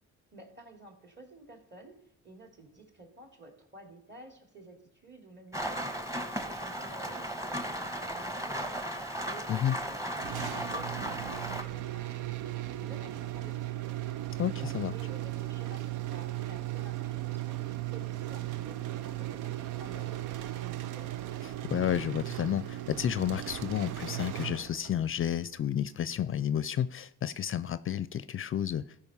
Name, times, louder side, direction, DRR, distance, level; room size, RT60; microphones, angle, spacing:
voice 1, 0.3-2.0 2.2-8.8 9.2-9.9 10.2-14.0 14.4-21.1, right 2 dB, 35° right, 3 dB, 2.9 m, -52 dB
Rain, 5.5-11.6, equal, 10° right, 1.3 m, -36 dB
sound 1, 10.2-25.1, right 15 dB, 85° right, 0.6 m, -37 dB
voice 2, 14.4-14.9 21.7-28.8, left 10 dB, 45° left, 15 dB, 0.4 m, -31 dB
14.0 x 5.2 x 5.6 m, 0.70 s
cardioid pair, 90°, 30 cm